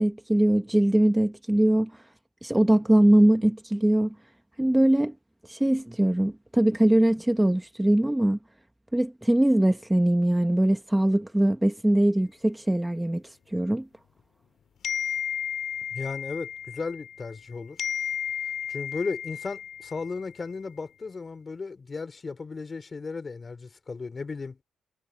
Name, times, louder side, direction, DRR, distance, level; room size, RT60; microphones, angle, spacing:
voice 1, 0.0-2.0 2.4-4.1 4.6-5.1 5.5-8.4 8.9-13.9, right 1 dB, 10° right, 1.2 m, -22 dB
sound 1, 14.8-17.5 17.8-20.4, left 8 dB, 65° left, 2.4 m, -33 dB
voice 2, 15.9-17.8 18.7-24.6, left 4 dB, 30° left, 3.4 m, -35 dB
cardioid pair, 90°, 0 cm